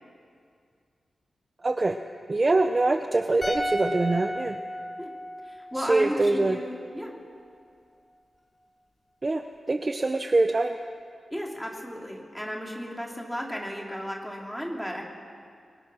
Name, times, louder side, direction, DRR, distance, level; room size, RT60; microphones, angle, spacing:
voice 1, 1.6-2.0 2.3-4.6 5.8-6.6 9.2-10.8, right 2 dB, 25° right, 6 dB, 0.8 m, -24 dB
sound 1, 3.4-6.6 6.9-7.0, equal, 15° left, 3.8 m, -34 dB
voice 2, 5.4-7.2 11.3-15.0, equal, ahead, -1 dB, 3.1 m, -34 dB
29.5 x 22.5 x 6.3 m, 2.2 s
wide cardioid pair, 175°, 0 cm